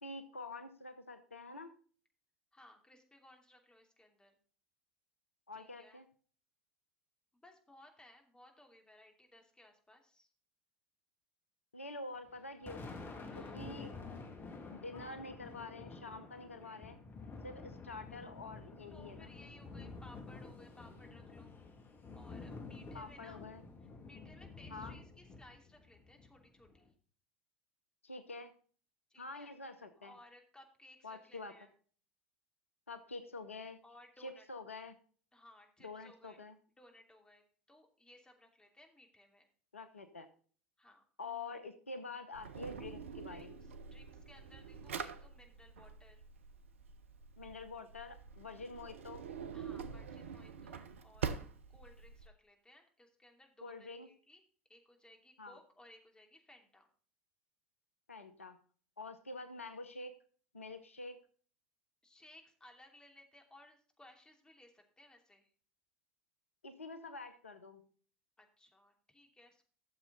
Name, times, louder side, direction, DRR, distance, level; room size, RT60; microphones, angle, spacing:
voice 1, 0.0-1.7 5.5-6.0 11.7-12.9 13.3-13.9 14.7-17.0 17.4-19.3 22.9-23.6 24.7-24.9 28.0-28.5 29.2-30.1 31.0-31.5 32.9-33.8 34.2-34.9 35.8-36.5 39.7-40.3 41.2-43.6 47.4-49.3 53.6-54.1 55.4-55.6 58.1-58.6 59.0-60.2 60.5-61.2 66.6-67.9, left 3 dB, 85° left, 10 dB, 0.9 m, -47 dB
voice 2, 2.5-4.4 5.5-6.0 7.3-10.3 13.2-13.6 18.9-21.6 22.2-23.4 23.8-26.9 29.1-29.5 30.0-31.7 33.8-34.5 35.3-36.4 36.7-39.5 40.8-41.0 43.3-46.2 49.5-51.4 51.7-54.4 54.7-56.9 62.0-65.5 68.4-69.6, left 1 dB, 10° left, 3 dB, 2.9 m, -61 dB
Thunder, 12.3-26.9, left 3 dB, 30° left, 2.1 m, -50 dB
Drawer open or close, 42.3-52.3, right 6 dB, 75° right, 0.8 m, -45 dB
13.0 x 7.3 x 3.9 m, 0.43 s
figure-of-eight pair, 75°, 7 cm